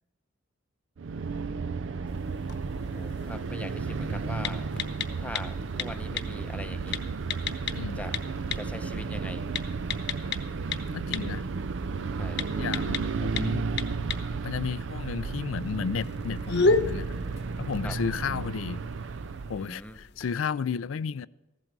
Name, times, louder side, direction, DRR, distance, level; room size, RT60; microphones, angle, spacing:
sound 1, 1.0-19.7, right 4 dB, 65° right, 0.5 m, -33 dB
sound 2, 2.1-20.3, left 4 dB, 60° left, 0.9 m, -35 dB
voice 1, 2.9-4.7 5.2-7.0 7.9-8.2 8.5-9.5 12.2-12.5 17.8-18.0 19.5-20.0, left 1 dB, 5° left, 0.7 m, -41 dB
sound 3, 10.2-18.6, equal, 25° left, 1.1 m, -52 dB
voice 2, 10.9-11.5 12.6-13.6 14.4-17.1 17.6-18.8 19.5-21.3, left 6 dB, 85° left, 0.4 m, -33 dB
15.0 x 12.0 x 4.6 m
head